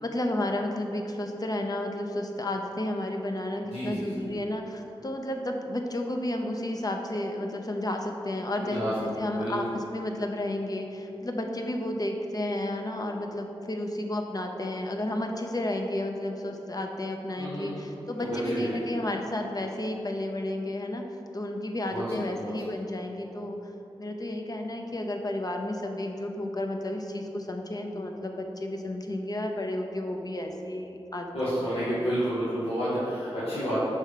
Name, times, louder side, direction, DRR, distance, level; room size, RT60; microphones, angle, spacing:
voice 1, 0.0-21.0 21.3-23.6 24.0-32.1, left 1 dB, 40° left, 3 dB, 0.7 m, -32 dB
voice 2, 3.6-4.1 8.6-8.9 9.2-9.6 17.4-18.8 21.9-22.5 31.3-33.8, equal, 80° left, -12 dB, 1.4 m, -31 dB
5.4 x 3.6 x 5.0 m, 2.9 s
cardioid pair, 40°, 10 cm